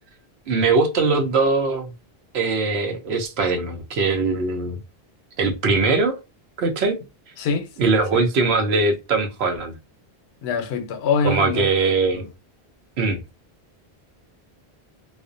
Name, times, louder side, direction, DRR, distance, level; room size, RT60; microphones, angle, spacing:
voice 1, 0.5-1.9 2.3-4.8 5.4-6.2 6.6-7.0 7.8-9.8 11.2-12.3 13.0-13.2, right 3 dB, 85° right, 0.9 m, -21 dB
voice 2, 7.4-7.7 10.4-11.7 12.1-12.2, left 5 dB, 80° left, 0.8 m, -24 dB
2.4 x 2.0 x 2.5 m
omnidirectional pair, 1.1 m